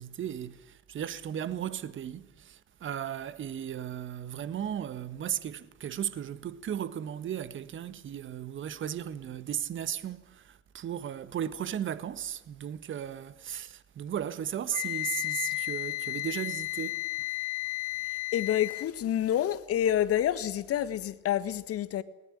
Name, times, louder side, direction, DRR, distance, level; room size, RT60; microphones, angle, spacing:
voice 1, 0.0-17.1, right 9 dB, 25° right, 1.6 m, -36 dB
Wind instrument woodwind instrument, 14.7-18.9, left 21 dB, 55° left, 2.1 m, -33 dB
voice 2, 18.3-22.0, left 11 dB, 35° left, 1.6 m, -28 dB
19.5 x 19.5 x 10.0 m
figure-of-eight pair, 85°, 43 cm